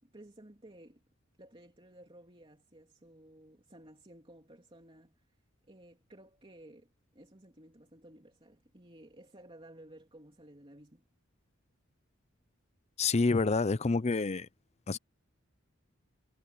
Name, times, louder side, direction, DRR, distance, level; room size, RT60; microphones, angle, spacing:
voice 1, 0.0-1.0 1.4-5.4 5.7-11.0, right 1 dB, 25° right, 3.1 m, -55 dB
voice 2, 13.0-14.5 14.9-15.0, left 3 dB, 30° left, 0.6 m, -28 dB
head